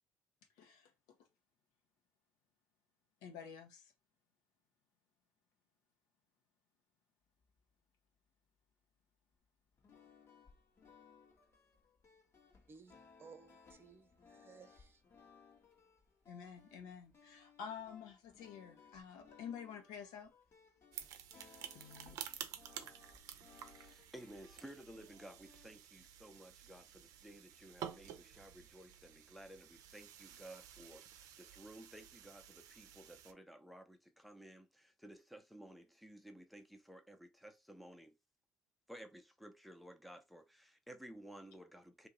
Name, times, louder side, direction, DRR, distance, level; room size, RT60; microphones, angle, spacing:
voice 1, 0.6-1.2 3.2-3.9 16.3-20.3 21.7-22.2, left 7 dB, 75° left, 1.2 m, -50 dB
sound 1, 9.7-25.7, left 5 dB, 45° left, 1.4 m, -64 dB
voice 2, 12.7-15.0, right 5 dB, 40° right, 0.8 m, -59 dB
sound 2, 20.9-33.3, right 10 dB, 65° right, 0.6 m, -52 dB
voice 3, 23.6-38.1 38.9-42.1, right 1 dB, ahead, 0.8 m, -55 dB
2.8 x 2.8 x 3.8 m
hypercardioid pair, 65°, 6 cm